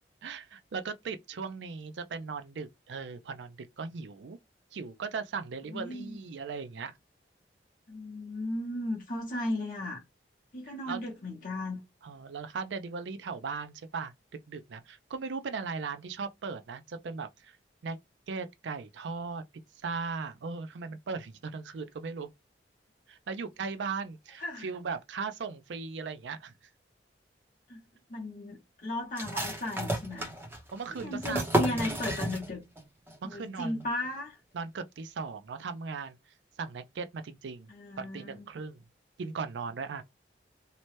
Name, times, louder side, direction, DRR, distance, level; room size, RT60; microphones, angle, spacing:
voice 1, 0.2-4.4 4.7-7.0 10.7-11.0 12.0-14.1 14.5-17.6 17.8-18.0 18.3-19.4 19.8-22.3 23.1-26.5 30.7-32.0 33.2-33.9 34.5-36.2 36.6-37.7 38.0-38.8 39.2-40.0, right 5 dB, 80° right, 0.4 m, -38 dB
voice 2, 5.7-6.2 7.9-10.0 10.5-11.8 24.4-24.7 27.7-27.8 28.1-30.3 30.9-32.6 33.2-34.4 37.7-38.5, left 1 dB, 45° left, 0.7 m, -35 dB
sound 1, 29.2-32.8 33.1-33.2 33.6-34.1, right 1 dB, 10° right, 0.7 m, -32 dB
2.8 x 2.1 x 3.0 m
head